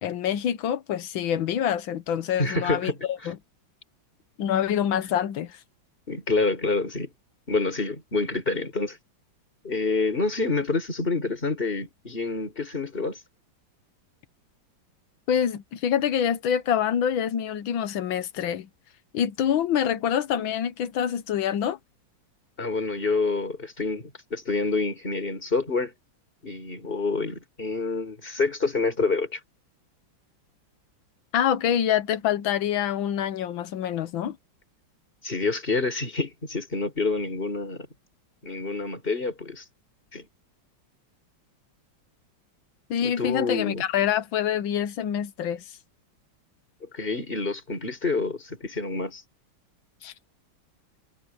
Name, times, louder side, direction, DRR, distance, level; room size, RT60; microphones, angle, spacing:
voice 1, 0.0-3.4 4.4-5.6 15.3-18.7 19.1-21.8 31.3-34.4 42.9-45.6 50.0-50.1, left 9 dB, 80° left, 1.7 m, -26 dB
voice 2, 2.4-3.3 6.1-7.1 7.5-9.0 9.6-13.2 22.6-25.9 26.4-29.4 35.2-37.9 38.4-39.6 40.1-40.3 43.0-43.8 46.9-49.2, left 3 dB, 25° left, 5.1 m, -27 dB
omnidirectional pair, 2.2 m